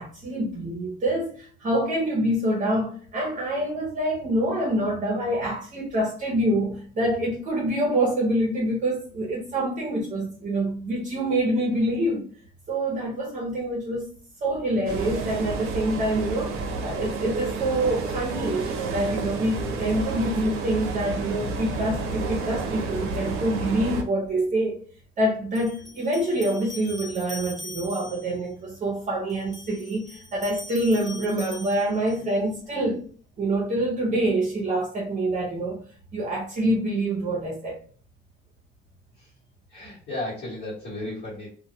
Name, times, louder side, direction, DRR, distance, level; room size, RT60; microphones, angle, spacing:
voice 1, 0.0-12.3 12.7-14.1 14.4-24.8 25.2-33.0 33.4-35.8 36.1-37.8, right 1 dB, 35° right, 0.7 m, -26 dB
sound 1, 14.9-24.0, right 3 dB, 85° right, 0.6 m, -30 dB
sound 2, 24.3-24.4 25.5-28.4 29.3-32.4, left 1 dB, ahead, 0.4 m, -42 dB
voice 2, 39.7-41.5, left 1 dB, 50° left, 1.1 m, -34 dB
2.2 x 2.1 x 2.8 m
cardioid pair, 170°, 21 cm